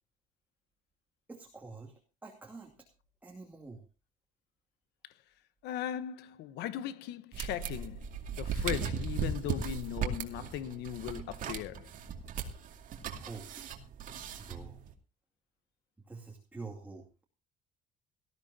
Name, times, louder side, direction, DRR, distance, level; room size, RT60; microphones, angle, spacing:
voice 1, 1.3-2.7 3.2-3.8 13.1-13.5 14.4-14.7 16.1-17.2, right 3 dB, 10° right, 2.5 m, -47 dB
voice 2, 5.6-8.0 8.3-11.9, left 11 dB, 80° left, 1.2 m, -38 dB
sound 1, 7.3-14.9, right 6 dB, 50° right, 2.4 m, -37 dB
19.0 x 14.0 x 2.8 m
cardioid pair, 160°, 17 cm